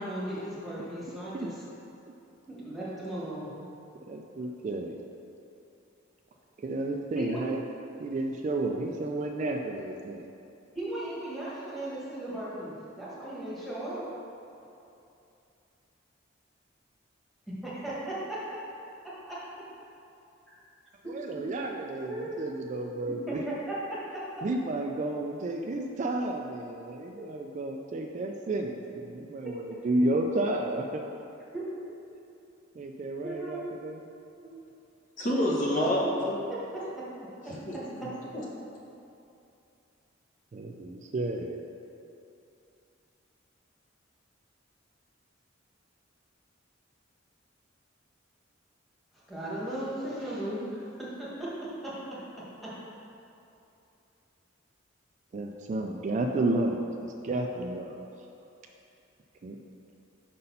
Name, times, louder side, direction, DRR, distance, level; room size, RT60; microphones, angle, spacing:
voice 1, 0.0-1.5 2.5-3.5 7.1-7.3 10.7-14.0 17.6-18.6 19.3-19.4 21.3-21.4 22.1-22.4 23.3-23.4 23.9-24.2 31.5-31.6 33.2-33.7 34.4-34.6 49.3-50.6 51.0-51.5 51.8-51.9 52.6-52.7, right 1 dB, ahead, -9 dB, 1.4 m, -36 dB
voice 2, 4.1-5.0 6.6-7.6 8.0-10.3 21.1-23.4 24.4-31.0 32.8-34.1 40.5-41.6 55.3-58.0 59.4-59.6, right 2 dB, 40° right, 2 dB, 0.3 m, -32 dB
voice 3, 35.2-36.5 37.4-38.5, equal, 40° left, -4 dB, 1.0 m, -29 dB
5.3 x 4.0 x 5.5 m, 2.7 s
head